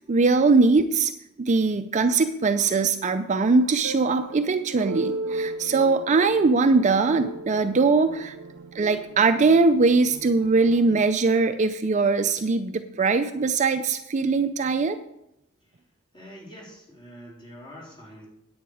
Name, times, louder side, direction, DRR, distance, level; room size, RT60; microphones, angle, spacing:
voice 1, 0.1-1.1 1.4-8.4 8.7-15.0, right 4 dB, 35° right, 9 dB, 0.4 m, -21 dB
sound 1, 3.1-11.0, right 2 dB, 80° right, 0.5 m, -36 dB
voice 2, 16.1-18.3, equal, 20° left, -4 dB, 3.7 m, -45 dB
10.0 x 8.7 x 4.9 m, 0.83 s
head